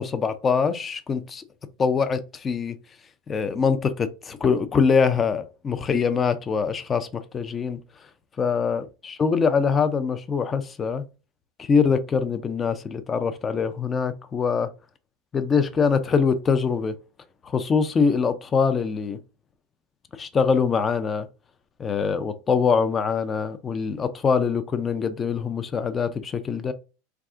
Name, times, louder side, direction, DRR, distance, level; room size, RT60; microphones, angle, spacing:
voice 1, 0.0-1.4 1.8-2.8 3.3-7.8 8.4-11.0 11.6-14.7 15.3-16.9 17.4-19.2 20.1-21.3 21.8-26.7, left 5 dB, 25° left, 0.4 m, -23 dB
2.4 x 2.3 x 3.6 m
hypercardioid pair, 90°, 0 cm